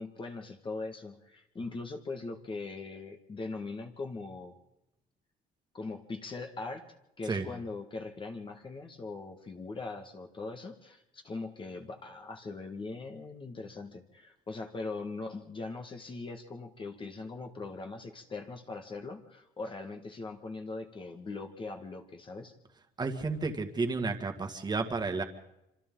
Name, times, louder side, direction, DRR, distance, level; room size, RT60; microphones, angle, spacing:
voice 1, 0.0-4.6 5.7-6.9 7.2-22.6, left 3 dB, 30° left, 3 dB, 1.9 m, -41 dB
voice 2, 23.0-25.2, right 4 dB, 25° right, 4 dB, 2.1 m, -32 dB
26.5 x 25.5 x 3.9 m, 0.87 s
cardioid pair, 110°, 17 cm